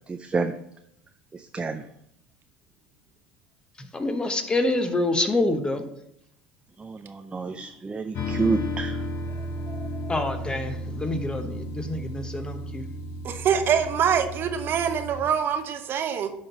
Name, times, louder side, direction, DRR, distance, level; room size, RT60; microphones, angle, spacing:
voice 1, 0.1-0.5 1.3-1.8 6.8-9.0 9.7-10.1, right 4 dB, 20° right, 7 dB, 0.5 m, -29 dB
voice 2, 3.8-5.8 10.1-12.9, left 2 dB, 20° left, 7 dB, 1.0 m, -27 dB
sound 1, 8.1-15.2, left 1 dB, 55° left, 1.3 m, -33 dB
voice 3, 13.2-16.3, right 7 dB, 45° right, 7 dB, 0.9 m, -24 dB
10.5 x 3.8 x 4.0 m, 0.77 s
hypercardioid pair, 80°, 5 cm